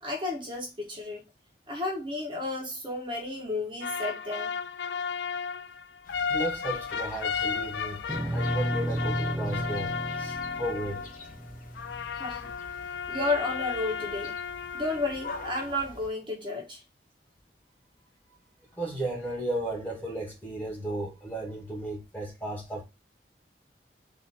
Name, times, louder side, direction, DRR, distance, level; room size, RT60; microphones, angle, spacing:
voice 1, 0.0-1.2 1.7-4.6 12.1-12.5 13.1-14.3 14.7-16.8, left 2 dB, 30° right, 1.3 m, -32 dB
sound 1, 3.8-11.3 11.8-15.8, left 6 dB, 75° left, 0.4 m, -34 dB
sound 2, 6.0-16.1, left 2 dB, 50° left, 1.0 m, -47 dB
voice 2, 6.3-8.0 8.3-11.1 18.8-22.8, right 1 dB, 10° left, 1.7 m, -34 dB
sound 3, 8.1-12.5, right 1 dB, 15° right, 0.3 m, -33 dB
4.1 x 3.0 x 4.1 m
head